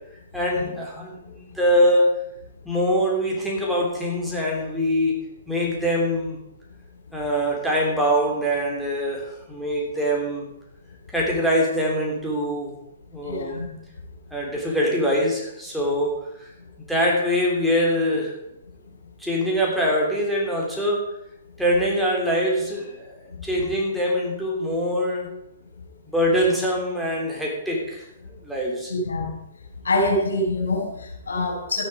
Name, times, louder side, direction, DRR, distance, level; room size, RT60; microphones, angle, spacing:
voice 1, 0.3-2.1 2.6-5.2 5.5-6.4 7.1-10.4 11.1-12.7 13.1-13.6 14.3-16.5 16.9-18.3 19.2-21.1 21.6-25.3 26.1-28.0 28.4-28.9, equal, ahead, -3 dB, 3.2 m, -23 dB
voice 2, 13.2-13.7 23.5-23.7 28.9-29.4 29.8-31.8, left 2 dB, 70° left, 1 dB, 5.2 m, -25 dB
13.0 x 11.0 x 4.9 m, 0.82 s
figure-of-eight pair, 120°, 0 cm